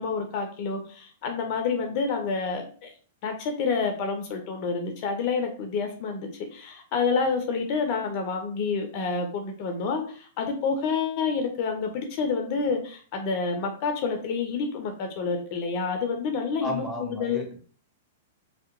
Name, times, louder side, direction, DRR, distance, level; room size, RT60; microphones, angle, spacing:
voice 1, 0.0-2.9 3.2-17.4, left 5 dB, 45° left, 4 dB, 0.4 m, -28 dB
voice 2, 16.6-17.6, equal, 5° left, 1 dB, 0.8 m, -34 dB
2.7 x 2.1 x 2.4 m, 0.43 s
hypercardioid pair, 110°, 0 cm